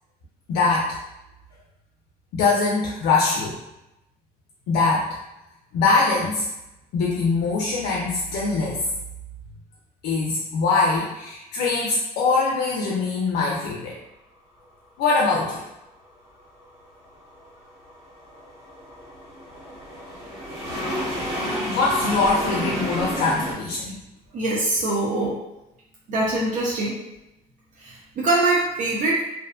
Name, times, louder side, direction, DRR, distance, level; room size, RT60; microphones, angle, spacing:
voice 1, 0.5-1.0 2.3-3.6 4.7-5.1 5.7-6.5 6.9-8.8 10.0-14.0 15.0-15.6 21.7-24.0, left 3 dB, 75° left, -3 dB, 0.4 m, -22 dB
sound 1, 16.6-23.5, equal, 85° right, 1.1 m, -31 dB
voice 2, 24.3-25.4 26.1-27.0 27.8-29.2, right 2 dB, 50° right, -4 dB, 0.5 m, -23 dB
2.5 x 2.1 x 2.4 m, 0.93 s
cardioid pair, 110°, 17 cm